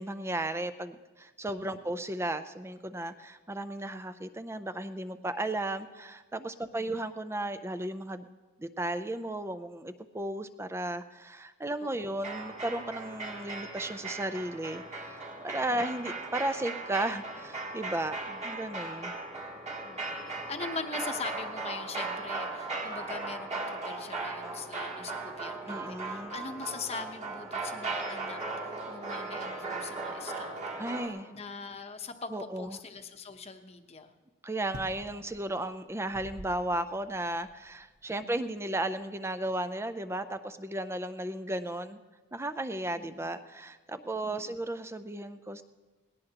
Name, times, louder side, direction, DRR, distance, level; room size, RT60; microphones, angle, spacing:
voice 1, 0.0-8.3 8.6-18.2 18.4-19.2 25.7-26.4 30.8-31.3 32.3-32.8 34.4-42.0 42.3-45.6, right 1 dB, 10° right, 10 dB, 0.5 m, -35 dB
voice 2, 1.6-2.0 6.7-7.1 11.8-12.2 15.7-15.8 18.3-18.5 19.8-30.9 31.3-34.1 38.2-38.4 43.0-43.1 44.2-44.6, left 4 dB, 30° left, 6 dB, 0.9 m, -42 dB
sound 1, 12.2-31.1, right 3 dB, 35° right, 2.0 m, -38 dB
sound 2, 34.7-40.2, right 1 dB, 60° right, 1.1 m, -50 dB
19.5 x 17.5 x 2.9 m, 1.3 s
head